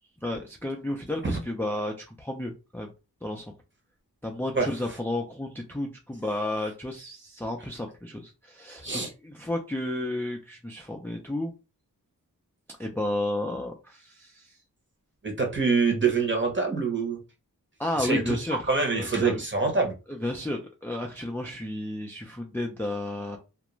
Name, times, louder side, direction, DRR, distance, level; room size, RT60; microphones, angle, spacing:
voice 1, 0.2-2.9 3.2-3.5 4.2-11.5 12.7-14.6 17.8-18.7 18.9-19.4 20.1-23.4, left 1 dB, 5° left, 2 dB, 0.4 m, -32 dB
voice 2, 15.2-17.2 18.0-19.9, right 4 dB, 30° right, 2 dB, 0.9 m, -25 dB
2.4 x 2.1 x 3.0 m, 0.29 s
wide cardioid pair, 70°, 37 cm